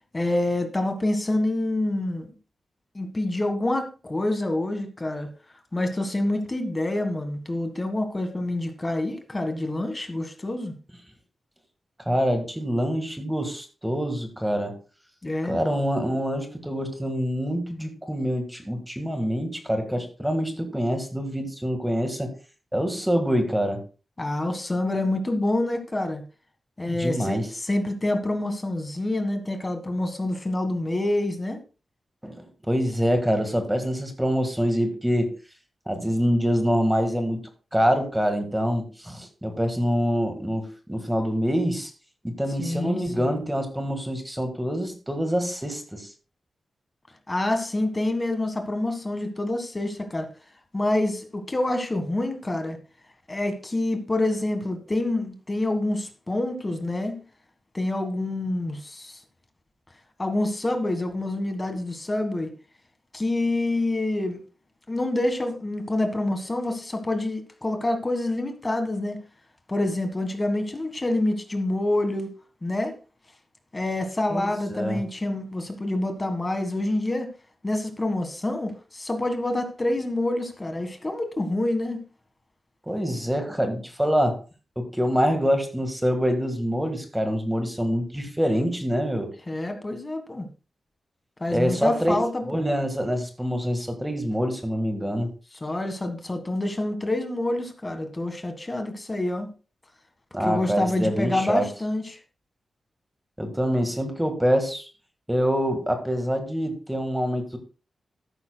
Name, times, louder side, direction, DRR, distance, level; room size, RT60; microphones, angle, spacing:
voice 1, 0.1-2.3 2.9-5.3 5.7-10.7 15.2-15.6 24.2-26.2 26.8-31.6 42.6-43.4 47.3-50.3 50.7-52.8 53.3-57.2 57.7-59.2 60.2-62.5 63.1-64.4 64.9-69.2 69.7-72.3 72.6-72.9 73.7-77.3 77.6-82.0 89.5-90.5 91.4-92.7 95.6-99.5 100.4-102.2, left 1 dB, 20° left, 6 dB, 1.6 m, -27 dB
voice 2, 12.0-14.8 15.4-22.3 22.7-23.8 26.9-27.5 32.2-35.3 35.9-41.9 42.2-46.1 74.3-74.4 74.7-75.0 82.9-84.4 84.7-89.3 91.5-92.2 92.5-95.3 100.3-101.7 103.4-104.9 105.3-107.6, equal, 5° right, 5 dB, 1.7 m, -25 dB
13.5 x 11.0 x 2.3 m, 0.34 s
wide cardioid pair, 150°, 0 cm